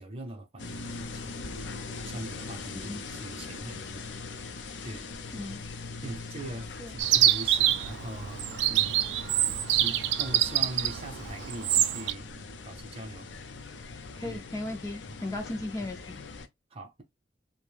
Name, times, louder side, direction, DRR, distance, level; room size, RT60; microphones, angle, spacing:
voice 1, 0.0-1.6 2.0-4.1 4.8-5.1 6.0-8.4 8.7-9.0 9.7-13.3 14.2-14.4 15.8-15.9 16.7-17.0, right 1 dB, 30° right, 0.7 m, -41 dB
sound 1, 0.6-16.5, left 4 dB, 80° left, 0.5 m, -41 dB
Chirp tweet, 7.0-12.1, right 12 dB, 75° right, 0.3 m, -26 dB
voice 2, 14.2-16.2, left 2 dB, 20° left, 0.4 m, -36 dB
2.4 x 2.1 x 3.2 m
head